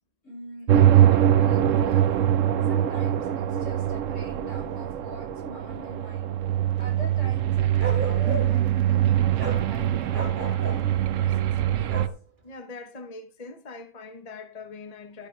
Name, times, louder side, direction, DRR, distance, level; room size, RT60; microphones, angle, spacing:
voice 1, 0.2-2.2 2.6-6.3 6.8-12.0, equal, 80° left, 7.3 m, -44 dB
sound 1, 0.7-12.1, right 11 dB, 90° right, 1.1 m, -23 dB
Bark, 7.8-8.7 9.4-9.6 10.1-10.9 11.9-12.2, right 2 dB, 40° right, 1.9 m, -33 dB
voice 2, 12.4-15.3, left 3 dB, 30° left, 1.2 m, -42 dB
12.0 x 10.5 x 3.3 m
omnidirectional pair, 1.3 m